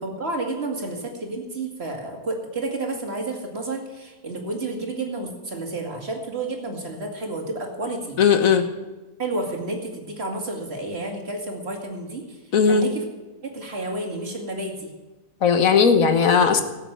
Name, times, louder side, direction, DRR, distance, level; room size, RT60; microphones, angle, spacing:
voice 1, 0.0-8.2 9.2-12.4 12.6-13.0 13.4-14.9, right 2 dB, 40° right, 2 dB, 2.6 m, -30 dB
voice 2, 8.2-8.6 12.5-12.8 15.4-16.6, left 6 dB, 65° left, 8 dB, 1.6 m, -17 dB
14.0 x 8.3 x 7.6 m, 1.2 s
omnidirectional pair, 1.6 m